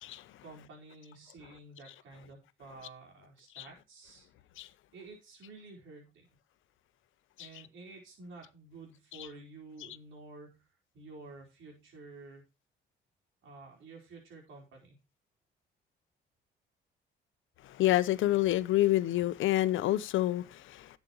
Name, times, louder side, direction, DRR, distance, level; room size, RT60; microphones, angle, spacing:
voice 1, 0.4-4.3 4.9-6.3 7.4-10.7 10.9-12.4 13.4-15.0, right 3 dB, 75° right, 4.7 m, -51 dB
voice 2, 17.8-20.9, left 15 dB, 80° left, 0.9 m, -28 dB
11.5 x 8.5 x 3.1 m
cardioid pair, 90°, 20 cm